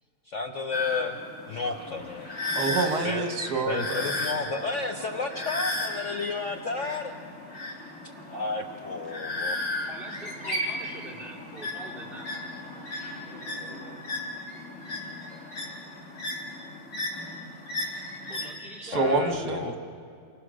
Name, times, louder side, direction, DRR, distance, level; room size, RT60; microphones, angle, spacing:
voice 1, 0.3-1.2 1.5-2.3 3.0-3.2 3.7-7.1 8.3-9.6 18.9-19.7, left 4 dB, 50° left, 3 dB, 1.2 m, -32 dB
sound 1, 0.7-18.5, left 2 dB, 90° left, 5.4 m, -35 dB
voice 2, 2.6-4.1 18.8-19.8, right 3 dB, 65° right, 4 dB, 1.9 m, -27 dB
voice 3, 7.6-8.5 9.9-12.3 18.3-19.2, right 1 dB, ahead, -6 dB, 4.4 m, -45 dB
28.5 x 21.0 x 6.4 m, 2.3 s
omnidirectional pair, 1.9 m